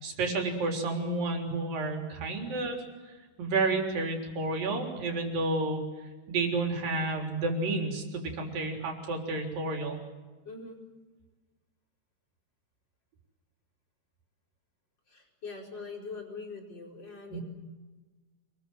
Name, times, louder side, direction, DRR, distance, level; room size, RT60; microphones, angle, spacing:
voice 1, 0.0-2.8 3.1-3.2 3.4-5.8 6.3-10.0 17.3-17.4, right 3 dB, 90° right, 2 dB, 5.5 m, -30 dB
voice 2, 10.4-10.8 15.1-17.4, left 4 dB, 30° left, 1 dB, 5.5 m, -42 dB
27.5 x 21.0 x 8.0 m, 1.3 s
omnidirectional pair, 3.9 m